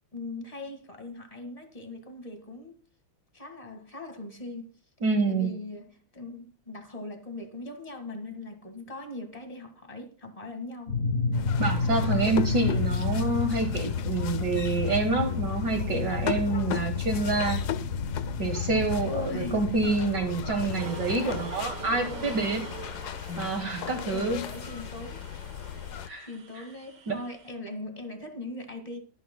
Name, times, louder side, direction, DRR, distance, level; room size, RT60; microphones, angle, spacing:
voice 1, 0.1-2.8 3.3-4.7 5.3-11.0 11.8-12.4 19.0-19.6 24.0-25.2 26.3-29.0, left 2 dB, 20° left, 1.7 m, -40 dB
voice 2, 5.0-5.5 11.6-17.6 18.4-22.6 23.4-24.4 26.0-26.3 26.6-26.7 27.1-27.2, right 3 dB, 55° right, 2.0 m, -27 dB
sound 1, 10.9-21.2, left 4 dB, 40° left, 1.6 m, -31 dB
sound 2, 11.3-26.1, left 9 dB, 65° left, 1.0 m, -36 dB
sound 3, 20.8-27.5, right 6 dB, 85° right, 2.5 m, -45 dB
23.0 x 9.4 x 2.2 m
omnidirectional pair, 2.3 m